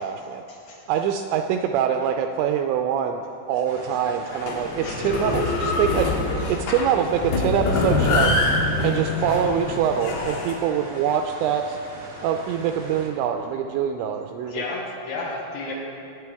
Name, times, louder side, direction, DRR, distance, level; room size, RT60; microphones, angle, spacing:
voice 1, 0.0-0.4 0.9-3.2 3.5-8.4 8.8-11.8 12.2-14.6, right 8 dB, 85° right, 5 dB, 2.6 m, -24 dB
sound 1, 3.6-13.1, right 1 dB, 70° right, 1.2 m, -42 dB
sound 2, 4.3-10.6, left 2 dB, 90° left, 4.1 m, -24 dB
voice 2, 4.8-5.3 14.5-15.7, left 3 dB, 70° left, -2 dB, 2.6 m, -32 dB
20.0 x 9.5 x 3.5 m, 2.8 s
omnidirectional pair, 5.6 m